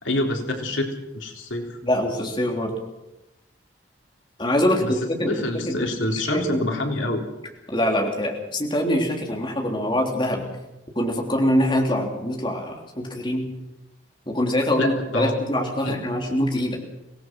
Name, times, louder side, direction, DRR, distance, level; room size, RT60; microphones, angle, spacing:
voice 1, 0.0-1.8 4.8-4.9 5.3-7.2 14.8-15.3 15.8-16.0, left 1 dB, 85° left, 2 dB, 3.7 m, -27 dB
voice 2, 1.8-2.7 4.4-6.6 7.7-10.5 10.9-13.5 14.3-16.8, equal, 25° left, 1 dB, 3.3 m, -24 dB
25.0 x 18.0 x 6.1 m, 0.93 s
head